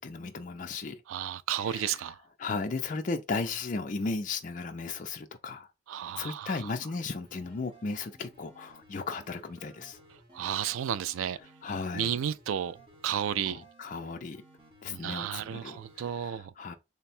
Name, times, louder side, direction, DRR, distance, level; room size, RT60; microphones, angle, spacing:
voice 1, 0.0-1.0 1.6-2.0 2.4-5.7 6.0-10.0 11.6-12.1 13.4-14.4 14.8-16.7, left 4 dB, 40° left, 0.4 m, -35 dB
voice 2, 1.1-2.2 5.9-6.5 10.3-11.4 11.9-12.8 13.0-13.6 14.9-16.5, right 9 dB, 85° right, 0.3 m, -32 dB
sound 1, 7.2-16.1, right 2 dB, 25° right, 0.9 m, -57 dB
3.3 x 2.2 x 4.2 m
head